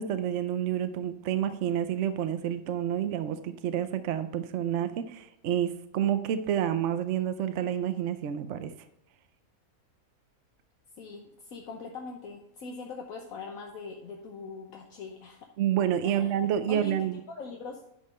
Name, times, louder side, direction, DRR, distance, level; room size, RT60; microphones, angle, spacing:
voice 1, 0.0-8.7 15.6-17.2, right 10 dB, 65° right, 11 dB, 0.9 m, -29 dB
voice 2, 11.0-15.5 16.0-16.4 16.7-17.8, left 4 dB, 75° left, 1 dB, 1.4 m, -42 dB
10.0 x 5.6 x 4.2 m, 0.83 s
omnidirectional pair, 1.5 m